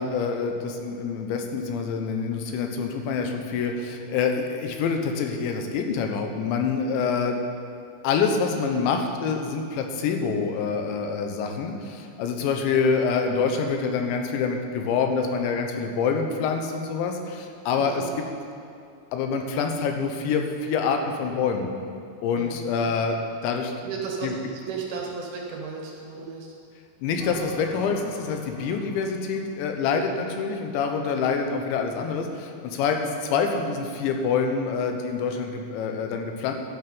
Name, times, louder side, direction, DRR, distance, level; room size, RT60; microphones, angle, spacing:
voice 1, 0.0-7.4 8.0-18.0 19.1-21.7 22.2-23.2 23.4-23.7 24.2-24.3 27.0-36.5, left 5 dB, 90° left, 4 dB, 3.2 m, -26 dB
voice 2, 17.8-18.1 22.4-22.9 23.8-26.5, right 5 dB, 70° right, 0 dB, 2.5 m, -35 dB
sound 1, 27.2-30.6, left 2 dB, ahead, 1.5 m, -44 dB
11.5 x 7.8 x 5.4 m, 2.5 s
omnidirectional pair, 5.1 m